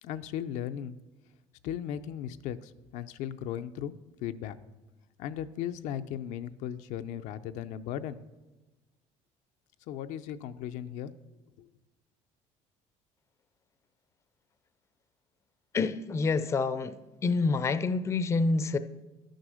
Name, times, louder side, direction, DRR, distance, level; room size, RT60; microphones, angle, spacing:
voice 1, 0.0-1.0 1.6-4.6 5.2-8.2 9.9-11.1 11.6-11.7, left 10 dB, 80° left, 9 dB, 0.5 m, -37 dB
voice 2, 15.7-16.9 17.2-18.8, left 4 dB, 25° left, 12 dB, 0.4 m, -27 dB
11.5 x 6.4 x 6.3 m, 1.1 s
cardioid pair, 135°, 12 cm